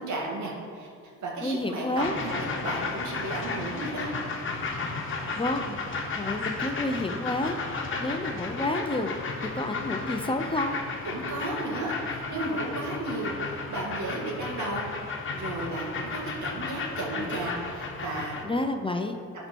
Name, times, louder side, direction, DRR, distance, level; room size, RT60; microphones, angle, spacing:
voice 1, 0.0-4.1 11.0-18.3, right 2 dB, 70° right, -2 dB, 2.2 m, -34 dB
voice 2, 1.4-2.1 5.4-5.8 6.2-9.1 9.5-10.8 18.4-19.2, left 2 dB, 15° left, 5 dB, 0.6 m, -29 dB
sound 1, 2.0-18.4, left 4 dB, 40° left, 1.3 m, -34 dB
12.0 x 4.5 x 4.6 m, 2.5 s
cardioid pair, 90°, 30 cm